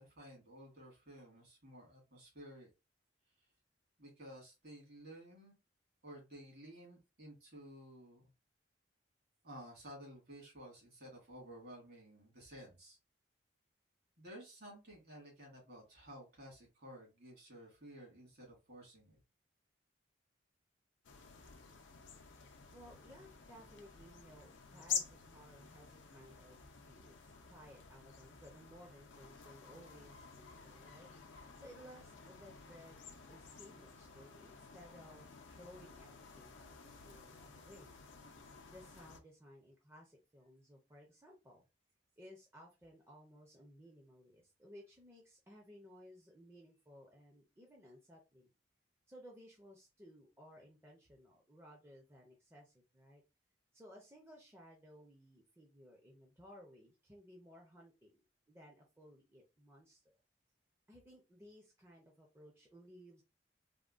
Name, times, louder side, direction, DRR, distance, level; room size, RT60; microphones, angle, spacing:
voice 1, 0.0-2.7 3.4-3.5 4.0-5.6 6.0-8.2 9.4-13.0 14.2-19.2, right 1 dB, 55° right, -1 dB, 1.8 m, -54 dB
sound 1, 21.0-39.2, left 7 dB, 90° left, 0.6 m, -49 dB
voice 2, 22.7-27.1 27.4-37.9 38.6-41.7 42.2-48.5 49.1-53.2 53.7-60.2 60.9-63.2, equal, 15° right, -1 dB, 0.6 m, -59 dB
3.5 x 2.2 x 2.4 m, 0.26 s
head